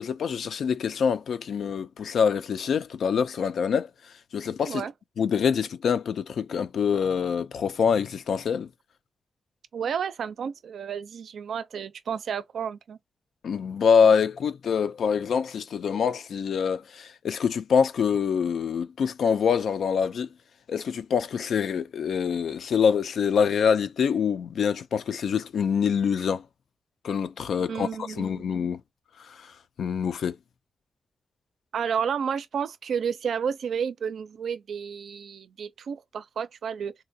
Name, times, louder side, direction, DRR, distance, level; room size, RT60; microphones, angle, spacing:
voice 1, 0.0-3.9 4.3-4.8 5.2-8.7 13.4-20.3 20.7-26.4 27.0-28.8 29.2-30.4, left 6 dB, 85° left, 0.4 m, -25 dB
voice 2, 9.7-13.0 27.6-28.5 31.7-36.9, right 7 dB, 80° right, 0.4 m, -31 dB
3.7 x 2.2 x 2.6 m
wide cardioid pair, 150°, 0 cm